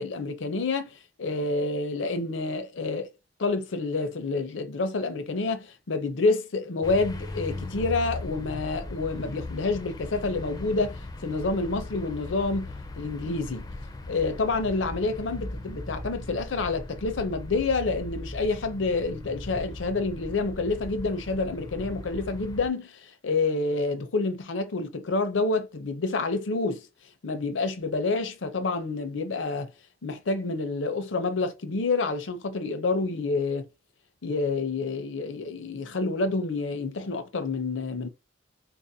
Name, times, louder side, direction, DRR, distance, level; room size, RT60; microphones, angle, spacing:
voice 1, 0.0-3.1 3.4-13.7 14.1-26.9 27.2-29.7 30.0-33.7 34.2-38.1, left 3 dB, 85° left, 0.6 m, -28 dB
sound 1, 6.8-22.7, left 2 dB, 20° left, 0.4 m, -38 dB
3.9 x 2.5 x 2.7 m
head